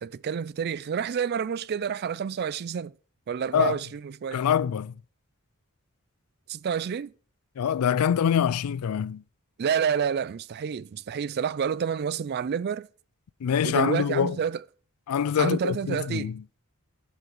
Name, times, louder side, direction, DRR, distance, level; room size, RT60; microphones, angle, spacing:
voice 1, 0.0-2.9 3.3-4.4 6.5-7.1 9.6-12.9 13.6-14.6 15.4-16.3, right 7 dB, 45° right, 0.3 m, -29 dB
voice 2, 4.3-4.9 7.6-9.2 13.4-14.4 15.1-16.4, left 8 dB, 80° left, 0.4 m, -25 dB
7.8 x 7.3 x 6.0 m
head